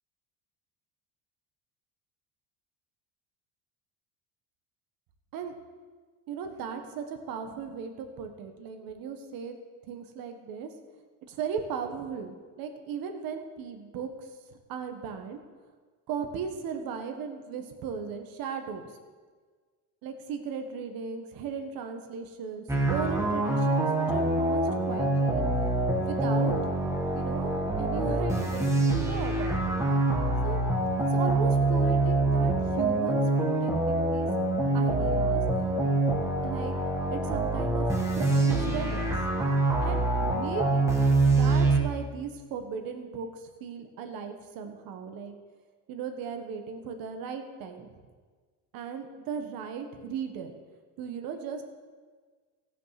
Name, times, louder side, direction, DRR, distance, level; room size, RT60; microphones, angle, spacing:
voice 1, 6.3-9.6 9.9-10.7 11.3-14.3 14.7-15.4 16.1-18.9 20.0-25.4 26.0-29.8 30.4-30.6 30.9-34.3 34.7-35.4 36.4-36.8 37.1-37.9 38.2-39.1 39.8-40.9 41.4-45.3 45.9-47.9 48.7-50.5 51.0-51.6, right 6 dB, 60° right, 6 dB, 1.6 m, -37 dB
sound 1, 22.7-41.8, right 2 dB, 5° right, 1.6 m, -25 dB
16.0 x 6.7 x 6.0 m, 1.5 s
cardioid pair, 130°, 39 cm